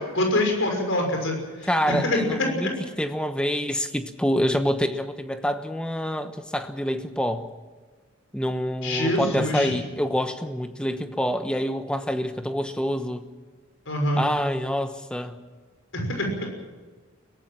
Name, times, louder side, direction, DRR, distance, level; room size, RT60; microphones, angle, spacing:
voice 1, 0.0-1.4 1.6-2.2 8.8-9.7 13.9-14.3 15.9-16.5, left 1 dB, 60° left, 3 dB, 6.0 m, -25 dB
voice 2, 1.7-7.5 8.3-13.2 14.1-15.4, equal, 5° left, 8 dB, 1.1 m, -26 dB
22.5 x 17.5 x 7.5 m, 1.4 s
head